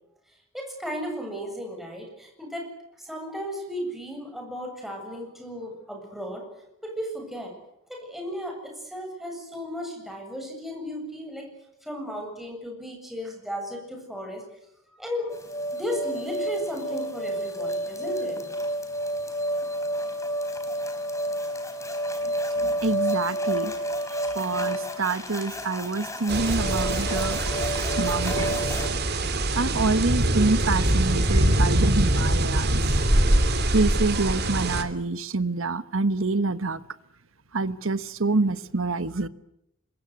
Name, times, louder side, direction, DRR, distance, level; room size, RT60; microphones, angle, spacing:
voice 1, 0.5-2.7 3.0-6.4 6.8-7.5 7.9-11.5 11.8-14.4 15.0-15.3 15.7-18.4, equal, ahead, 1 dB, 7.7 m, -35 dB
sound 1, 15.3-28.9, equal, 15° left, 4.2 m, -30 dB
voice 2, 22.6-23.7 24.3-27.4 28.0-28.6 29.6-32.9 33.7-36.8 37.5-39.3, right 3 dB, 65° right, 14 dB, 1.3 m, -26 dB
sound 2, 26.3-34.8, right 1 dB, 50° right, 2.8 m, -23 dB
27.0 x 23.0 x 8.1 m, 0.81 s
head